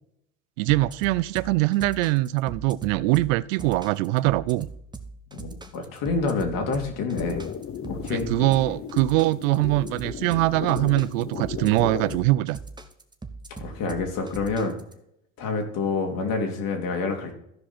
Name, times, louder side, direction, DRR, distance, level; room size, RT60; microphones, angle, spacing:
voice 1, 0.6-4.7 8.1-12.6, right 18 dB, 75° right, 0.5 m, -23 dB
sound 1, 0.7-14.9, right 3 dB, 10° right, 1.0 m, -40 dB
voice 2, 5.3-7.4 7.9-8.3 13.6-14.7 15.4-17.3, left 4 dB, 60° left, 2.5 m, -27 dB
sound 2, 7.1-12.2, left 7 dB, 35° left, 0.8 m, -35 dB
14.5 x 5.1 x 4.3 m
hypercardioid pair, 85°, 39 cm